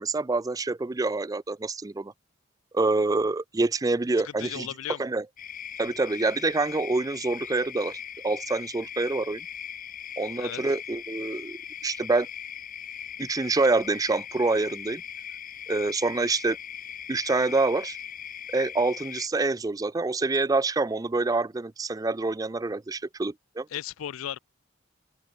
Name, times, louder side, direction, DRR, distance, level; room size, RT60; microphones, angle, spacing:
voice 1, 0.0-2.1 2.7-4.7 5.0-5.3 5.8-9.5 10.2-12.3 13.2-15.0 15.7-16.6 17.1-18.0 18.5-23.7, right 3 dB, 15° right, 0.4 m, -26 dB
voice 2, 4.4-5.0 10.4-10.6 23.7-24.4, left 10 dB, 80° left, 0.4 m, -35 dB
sound 1, 5.4-19.3, left 9 dB, 40° left, 1.4 m, -40 dB
open air
head